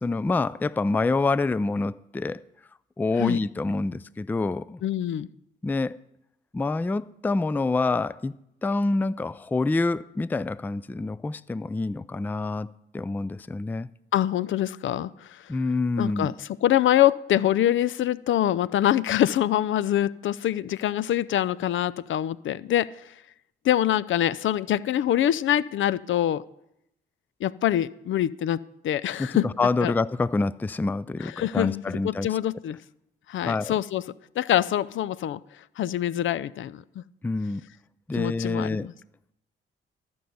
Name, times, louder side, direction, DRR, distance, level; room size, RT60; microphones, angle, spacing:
voice 1, 0.0-2.4 3.0-4.8 5.6-6.0 6.5-8.3 8.6-13.9 15.5-16.3 29.2-32.3 33.4-33.7 37.2-37.6 38.1-38.9, left 3 dB, 10° left, 0.3 m, -27 dB
voice 2, 4.8-5.3 14.1-15.5 16.0-23.1 23.6-26.4 27.4-28.6 28.8-29.5 29.8-29.9 31.2-32.8 33.3-34.0 34.4-35.4 35.8-37.0 38.2-38.9, left 12 dB, 70° left, 0.5 m, -25 dB
14.0 x 5.5 x 7.8 m
cardioid pair, 70°, 21 cm